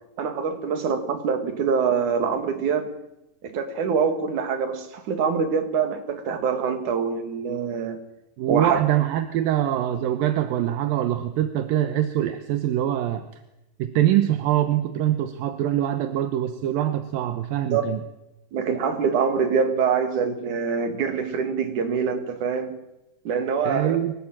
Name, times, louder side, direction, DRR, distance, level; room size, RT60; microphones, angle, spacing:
voice 1, 0.2-3.0 3.4-8.0 8.5-8.8 17.7-17.8 18.5-22.8 23.3-24.0, right 6 dB, 60° right, 6 dB, 3.7 m, -25 dB
voice 2, 8.4-13.3 13.8-18.0 23.6-24.1, right 12 dB, 75° right, 9 dB, 2.8 m, -23 dB
24.5 x 18.0 x 9.0 m, 0.91 s
omnidirectional pair, 4.2 m